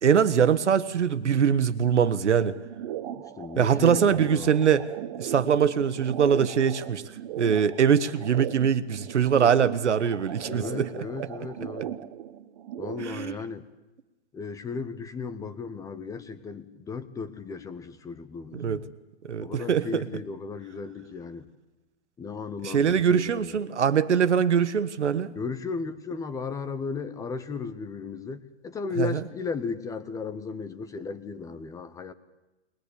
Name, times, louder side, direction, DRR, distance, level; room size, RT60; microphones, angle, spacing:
voice 1, 0.0-2.5 3.6-4.8 5.1-7.0 7.4-10.9 13.0-13.3 18.5-18.8 19.3-20.0 22.6-25.3 29.0-29.1, right 7 dB, 80° right, 13 dB, 1.6 m, -23 dB
sound 1, 2.4-13.2, right 11 dB, 35° right, 1.3 m, -38 dB
voice 2, 3.1-4.8 10.5-12.0 12.8-13.7 14.3-18.9 19.4-21.5 22.2-23.6 25.3-32.1, left 5 dB, 10° left, 12 dB, 0.8 m, -35 dB
22.0 x 20.0 x 8.5 m, 1.0 s
hypercardioid pair, 140°, 34 cm